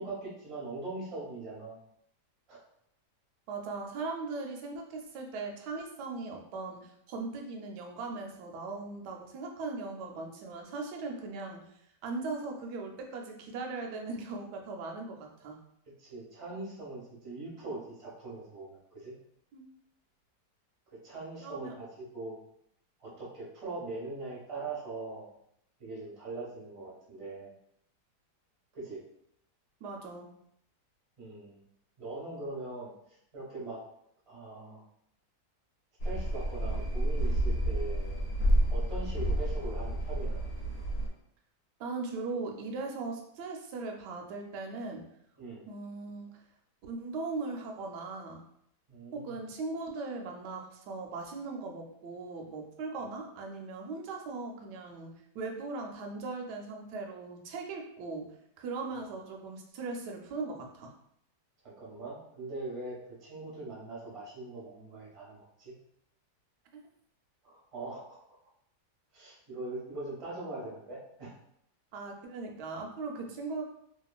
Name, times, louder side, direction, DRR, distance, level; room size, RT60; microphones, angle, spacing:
voice 1, 0.0-1.8 2.5-2.6 16.0-19.1 20.9-22.4 23.0-25.3 25.8-27.5 28.7-29.0 31.2-31.6 32.0-32.9 33.3-33.8 34.3-34.8 36.0-40.4 45.4-45.6 48.9-49.4 61.6-63.0 63.2-65.7 67.4-68.2 69.1-71.3, right 2 dB, 30° right, -6 dB, 0.7 m, -41 dB
voice 2, 3.5-11.6 12.0-15.6 19.5-19.7 21.4-21.7 29.8-30.3 41.8-45.0 45.7-46.3 46.8-48.4 49.1-58.3 58.6-60.9 71.9-73.6, right 3 dB, 80° right, 2 dB, 1.1 m, -39 dB
sound 1, 36.0-41.1, right 1 dB, 70° left, 1.1 m, -30 dB
2.9 x 2.4 x 2.3 m, 0.73 s
omnidirectional pair, 1.8 m